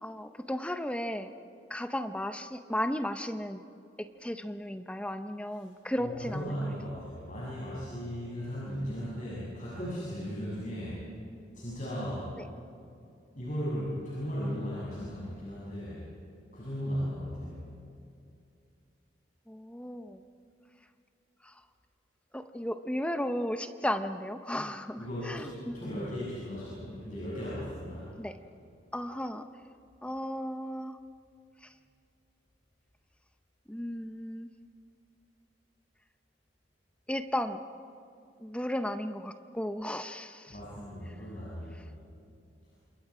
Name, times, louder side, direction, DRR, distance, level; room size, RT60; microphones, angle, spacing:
voice 1, 0.0-1.3 1.7-3.6 4.0-6.6 12.4-12.5 19.5-20.2 21.4-21.5 22.3-26.0 28.2-28.3 28.9-29.5 30.0-31.0 33.7-34.5 37.1-37.6 38.4-40.6, left 1 dB, 5° left, 8 dB, 0.7 m, -35 dB
voice 2, 6.0-11.0 11.5-12.3 13.4-16.0 16.5-17.6 25.0-28.1 40.5-41.9, equal, 45° left, -8 dB, 7.7 m, -36 dB
29.0 x 27.5 x 5.0 m, 2.5 s
head